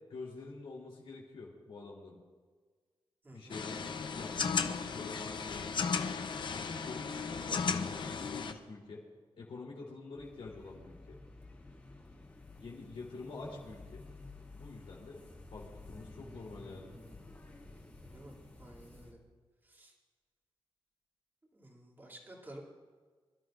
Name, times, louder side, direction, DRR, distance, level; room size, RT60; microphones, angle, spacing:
voice 1, 0.1-2.2 3.3-3.8 4.1-6.0 6.5-9.0 9.4-11.0 12.6-14.0 14.5-15.2 15.5-16.9, left 3 dB, 75° left, -4 dB, 3.4 m, -47 dB
voice 2, 3.2-3.6 18.0-19.2 19.6-19.9 21.5-22.6, right 1 dB, 20° right, -2 dB, 2.8 m, -52 dB
sound 1, 3.5-8.5, left 5 dB, 55° left, 0.8 m, -35 dB
sound 2, 10.2-19.1, left 2 dB, 20° left, 2.6 m, -52 dB
25.0 x 12.5 x 2.6 m, 1.5 s
wide cardioid pair, 155°, 9 cm